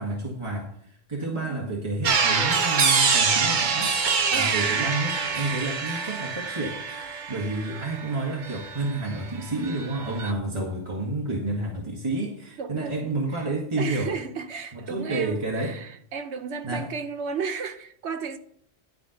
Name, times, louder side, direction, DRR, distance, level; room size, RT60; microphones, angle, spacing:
voice 1, 0.0-3.9 4.3-6.8 7.3-14.2 14.7-15.8 16.6-16.8, right 2 dB, 25° right, 1.7 m, -30 dB
voice 2, 1.2-1.7 4.3-4.6 12.6-13.0 13.3-13.5 13.8-18.4, right 5 dB, 85° right, 1.2 m, -34 dB
sound 1, 2.0-9.2 9.5-10.3, right 5 dB, 50° right, 1.0 m, -25 dB
12.0 x 4.3 x 7.8 m
omnidirectional pair, 1.1 m